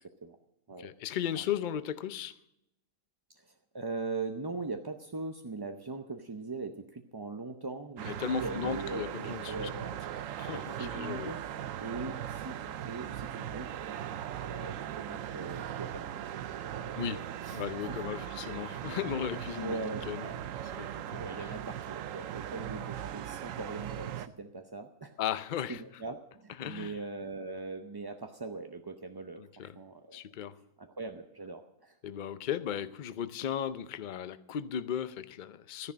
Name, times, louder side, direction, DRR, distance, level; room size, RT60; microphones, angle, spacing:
voice 1, 0.8-2.4 8.0-9.7 10.4-11.3 17.0-17.2 17.5-19.8 20.1-20.3 20.6-21.5 25.2-25.8 26.6-27.0 29.4-29.8 30.1-30.6 32.0-35.9, left 9 dB, 50° left, 0.6 m, -36 dB
voice 2, 3.3-10.0 10.5-11.4 11.8-12.6 12.8-14.0 14.4-16.1 16.5-17.0 17.4-17.6 17.9-18.0 19.6-20.1 21.1-25.1 25.7-30.2 30.8-32.0, right 3 dB, 30° right, 0.5 m, -40 dB
sound 1, 8.0-24.3, right 10 dB, 75° right, 1.0 m, -39 dB
13.5 x 11.0 x 6.3 m
omnidirectional pair, 1.4 m